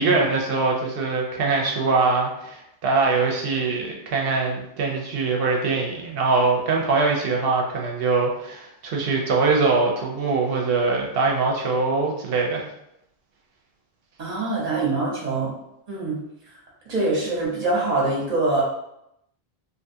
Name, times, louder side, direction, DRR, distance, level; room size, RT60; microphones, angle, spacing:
voice 1, 0.0-12.6, right 3 dB, 70° right, -1 dB, 0.8 m, -22 dB
voice 2, 14.2-15.5 15.9-16.2 16.9-18.6, right 2 dB, 40° right, -5 dB, 1.0 m, -24 dB
2.5 x 2.3 x 2.7 m, 0.80 s
omnidirectional pair, 1.0 m